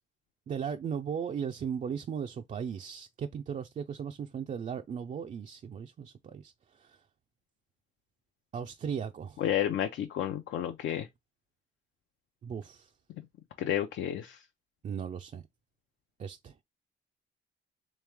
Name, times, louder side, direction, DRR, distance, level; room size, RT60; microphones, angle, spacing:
voice 1, 0.5-7.0 8.5-9.4 12.4-12.9 14.8-15.4 16.2-16.6, right 7 dB, 40° right, 0.4 m, -37 dB
voice 2, 9.4-11.1 13.6-14.4, left 10 dB, 70° left, 0.6 m, -31 dB
3.2 x 3.2 x 3.4 m
cardioid pair, 90°, 20 cm